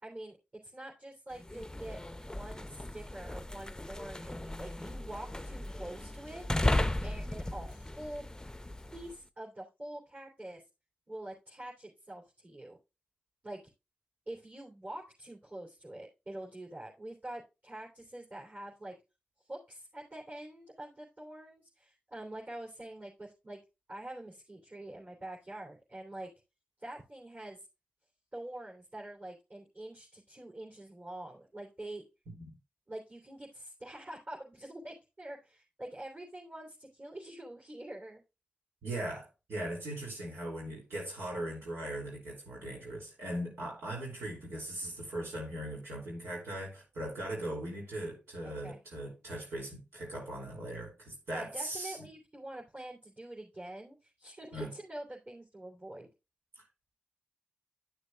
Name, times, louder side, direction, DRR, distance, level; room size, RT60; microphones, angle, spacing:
voice 1, 0.0-0.4 0.6-2.0 2.3-8.2 8.9-10.6 11.1-12.8 13.4-13.6 14.3-18.9 19.4-23.6 23.9-26.3 26.8-27.6 28.3-32.0 32.9-38.2 48.4-48.8 51.3-56.1, right 1 dB, 40° right, 3.3 m, -45 dB
sound 1, 1.3-9.2, left 1 dB, 15° left, 0.6 m, -36 dB
voice 2, 38.8-52.0 54.5-54.7 56.6-56.7, right 1 dB, 90° right, 2.9 m, -39 dB
12.0 x 6.6 x 2.4 m
cardioid pair, 40°, 4 cm